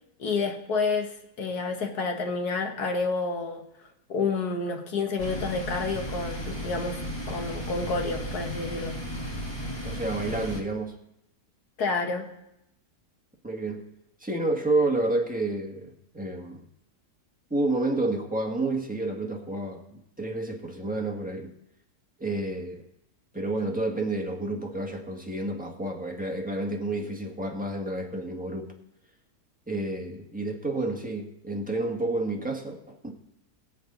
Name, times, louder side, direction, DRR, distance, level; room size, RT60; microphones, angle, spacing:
voice 1, 0.2-1.1 1.4-3.6 4.1-9.0 11.8-12.3, left 4 dB, 70° left, 1.9 m, -29 dB
sound 1, 5.2-10.6, equal, 15° left, 1.9 m, -35 dB
voice 2, 9.8-10.9 13.4-13.9 14.2-16.6 17.5-19.8 20.2-21.5 22.2-22.9 23.3-28.7 29.7-33.2, right 2 dB, 5° right, 1.6 m, -30 dB
22.0 x 7.7 x 3.9 m
omnidirectional pair, 1.7 m